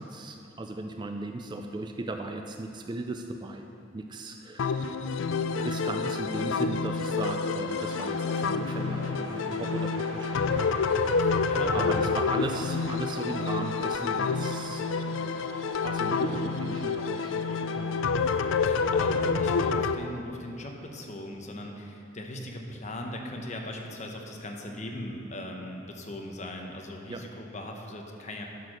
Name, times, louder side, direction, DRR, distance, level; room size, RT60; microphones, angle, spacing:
voice 1, 0.0-3.6 3.9-5.1 5.6-10.6 11.7-15.5 15.8-18.0 27.1-27.2, right 2 dB, 20° right, 5 dB, 0.3 m, -37 dB
sound 1, 4.6-19.9, left 4 dB, 70° left, 0.4 m, -28 dB
sound 2, 7.7-19.9, right 2 dB, 70° right, 0.8 m, -45 dB
voice 2, 11.2-11.9 18.6-28.5, left 1 dB, 35° left, 2 dB, 0.8 m, -39 dB
10.5 x 4.4 x 6.3 m, 2.7 s
head